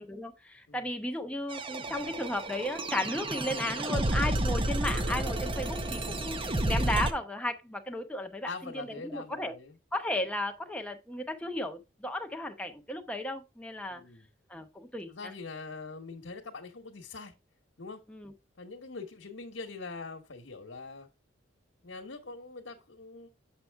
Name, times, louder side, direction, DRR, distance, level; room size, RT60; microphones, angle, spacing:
voice 1, 0.0-6.4 6.6-9.5 9.9-14.0 14.5-15.3 18.1-18.3, left 1 dB, 5° left, 0.9 m, -35 dB
sound 1, 1.5-7.1, right 1 dB, 25° right, 0.7 m, -31 dB
voice 2, 8.4-9.8 13.9-14.3 15.1-17.3 17.8-18.0 18.6-21.1 21.8-23.3, left 3 dB, 75° left, 1.2 m, -43 dB
7.6 x 6.0 x 3.4 m
head